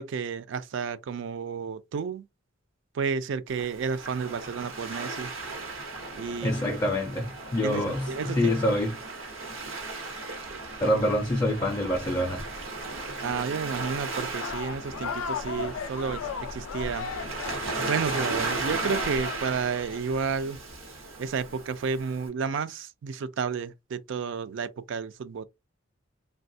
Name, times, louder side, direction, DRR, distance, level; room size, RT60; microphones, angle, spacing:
voice 1, 0.0-2.2 2.9-5.3 6.1-6.8 7.6-8.5 13.2-17.1 17.8-20.6 21.2-25.4, right 5 dB, 65° right, 0.3 m, -31 dB
Waves surf, 3.5-22.3, right 3 dB, 85° right, 0.9 m, -36 dB
voice 2, 6.4-9.0 10.8-12.4, left 1 dB, 20° left, 0.4 m, -26 dB
sound 1, 14.4-20.0, left 7 dB, 85° left, 0.4 m, -37 dB
3.2 x 2.2 x 2.6 m
head